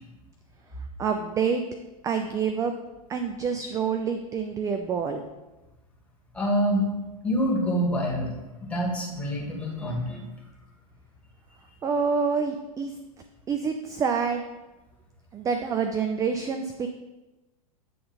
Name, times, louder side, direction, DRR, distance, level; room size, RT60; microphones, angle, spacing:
voice 1, 1.0-1.6 2.0-2.7 3.1-5.2 11.8-12.9 13.5-14.5 15.3-16.9, right 6 dB, 20° right, 7 dB, 0.4 m, -27 dB
voice 2, 6.3-6.9 7.2-10.2, equal, 5° left, -3 dB, 1.9 m, -26 dB
8.3 x 3.7 x 4.1 m, 1.1 s
figure-of-eight pair, 95°, 19 cm